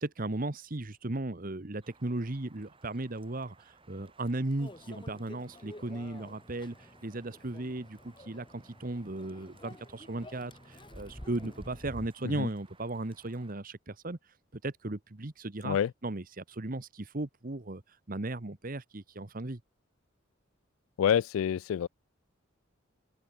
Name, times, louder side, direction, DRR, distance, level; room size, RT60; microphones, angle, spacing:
voice 1, 0.0-14.3 14.6-15.8 16.0-19.6, right 2 dB, 45° right, 1.2 m, -36 dB
sound 1, 1.8-13.5, right 4 dB, 25° right, 4.6 m, -62 dB
Microwave oven, 4.6-12.1, left 1 dB, 25° left, 3.8 m, -50 dB
voice 2, 21.0-21.9, left 8 dB, 80° left, 0.3 m, -27 dB
head